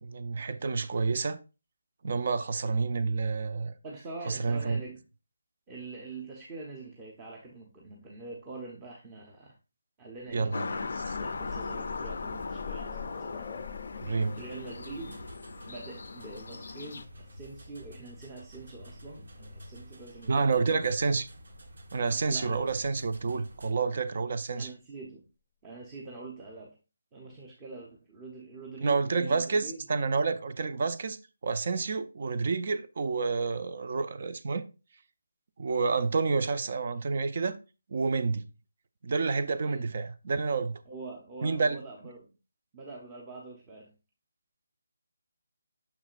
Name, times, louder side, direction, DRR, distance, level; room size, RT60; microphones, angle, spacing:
voice 1, 0.0-1.4 2.0-3.7 4.3-4.8 10.3-10.7 14.0-14.4 20.3-21.3 21.9-24.7 28.8-34.6 35.6-37.6 37.9-38.5 39.0-40.8 41.4-41.8, right 4 dB, 50° right, 0.6 m, -29 dB
voice 2, 3.8-5.0 5.7-9.6 10.0-13.5 14.3-15.3 15.7-20.8 22.3-22.8 24.6-25.2 25.6-26.7 27.1-29.9 39.6-40.0 40.9-42.3 42.7-43.9, right 3 dB, 15° right, 0.8 m, -44 dB
sound 1, 10.3-18.1 19.2-19.3 19.7-19.8, left 6 dB, 15° left, 0.7 m, -46 dB
sound 2, 10.5-17.0, left 4 dB, 65° left, 0.4 m, -38 dB
sound 3, 14.2-23.7, equal, 70° right, 1.3 m, -50 dB
6.5 x 6.0 x 2.5 m
hypercardioid pair, 165°, 0 cm